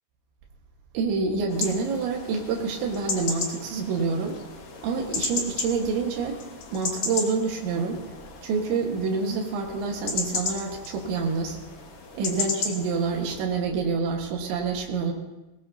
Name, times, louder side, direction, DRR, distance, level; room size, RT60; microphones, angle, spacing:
voice 1, 0.9-4.4 4.8-6.4 6.7-8.1 8.4-11.6 12.1-15.1, right 4 dB, 90° right, 1 dB, 3.9 m, -27 dB
sound 1, 1.5-13.4, left 4 dB, 90° left, 1.2 m, -34 dB
20.5 x 19.5 x 2.8 m, 1.0 s
omnidirectional pair, 5.1 m